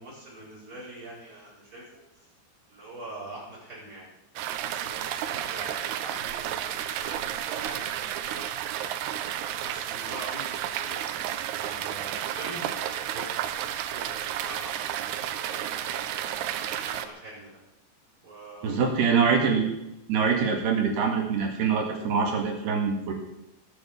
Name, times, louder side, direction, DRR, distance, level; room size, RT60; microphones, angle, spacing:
voice 1, 0.0-2.3 2.7-4.1 4.6-8.8 9.1-16.3 16.8-17.6 18.2-19.1 20.2-20.5, right 1 dB, 25° right, -5 dB, 7.0 m, -44 dB
sound 1, 4.4-17.1, right 11 dB, 80° right, 2.4 m, -32 dB
voice 2, 18.6-19.7 20.1-23.1, right 5 dB, 60° right, 1 dB, 3.8 m, -24 dB
21.0 x 7.3 x 7.1 m, 0.87 s
omnidirectional pair, 5.5 m